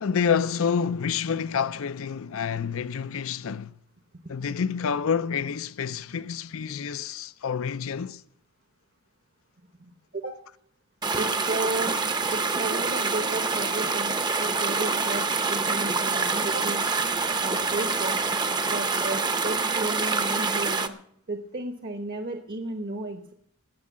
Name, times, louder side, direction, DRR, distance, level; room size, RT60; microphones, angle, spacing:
voice 1, 0.0-3.7 4.3-8.2, left 6 dB, 70° left, 0.5 m, -28 dB
voice 2, 9.8-10.4 11.2-12.0 12.3-16.8 17.4-18.3 18.7-20.9 21.3-23.3, right 2 dB, 45° right, 0.9 m, -33 dB
sound 1, 11.0-20.9, right 4 dB, 20° right, 0.7 m, -26 dB
18.0 x 6.5 x 7.3 m
head